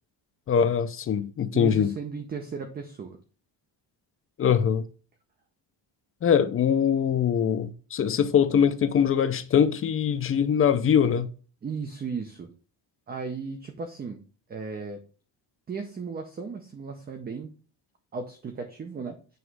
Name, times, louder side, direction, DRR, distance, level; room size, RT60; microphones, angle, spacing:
voice 1, 0.5-1.9 4.4-4.8 6.2-11.3, left 8 dB, 35° left, 0.4 m, -22 dB
voice 2, 1.5-3.2 11.6-12.5 13.1-14.2 14.5-15.0 15.7-17.5 18.1-19.2, right 5 dB, 25° right, 0.5 m, -35 dB
7.9 x 3.1 x 4.7 m
cardioid pair, 175°, 42 cm